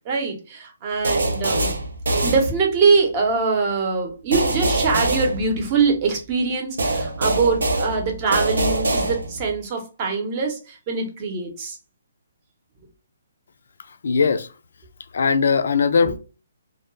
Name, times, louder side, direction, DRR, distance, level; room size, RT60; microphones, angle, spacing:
voice 1, 0.0-1.7 2.2-11.8 16.0-16.1, right 4 dB, 30° right, 0.7 m, -23 dB
sound 1, 1.0-3.0 4.3-6.1 6.8-9.6, right 2 dB, 85° right, 0.6 m, -24 dB
voice 2, 13.8-14.5 15.1-16.2, left 5 dB, 70° left, 0.3 m, -20 dB
2.2 x 2.1 x 3.0 m
hypercardioid pair, 155°, 0 cm